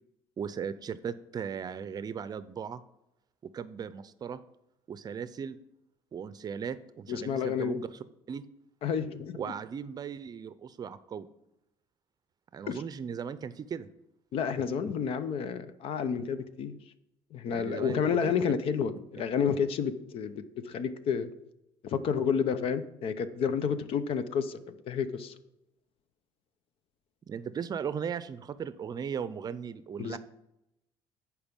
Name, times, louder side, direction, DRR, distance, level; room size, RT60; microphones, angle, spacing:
voice 1, 0.4-2.8 3.5-4.4 4.9-5.6 6.1-7.9 8.3-8.4 9.4-11.3 12.5-13.9 17.5-18.2 27.3-30.2, right 7 dB, 40° right, 14 dB, 0.6 m, -37 dB
voice 2, 7.1-7.8 8.8-9.4 12.7-12.8 14.3-16.8 17.3-21.3 21.8-25.4 30.0-30.2, left 7 dB, 60° left, 12 dB, 0.8 m, -30 dB
10.5 x 4.8 x 5.3 m, 0.86 s
cardioid pair, 100°, 11 cm